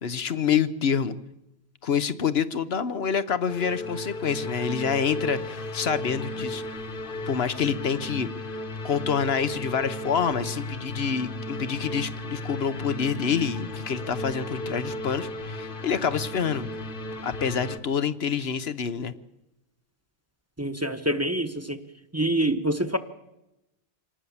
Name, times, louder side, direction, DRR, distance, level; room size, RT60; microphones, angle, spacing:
voice 1, 0.0-1.1 1.8-6.6 7.3-8.3 8.8-16.7 17.2-19.1, left 7 dB, 75° left, 13 dB, 1.2 m, -27 dB
sound 1, 3.5-17.8, left 1 dB, 55° left, 1.5 m, -35 dB
voice 2, 20.6-21.8 22.1-23.0, right 1 dB, 15° right, 10 dB, 1.1 m, -26 dB
26.0 x 19.0 x 7.1 m, 0.93 s
omnidirectional pair, 1.0 m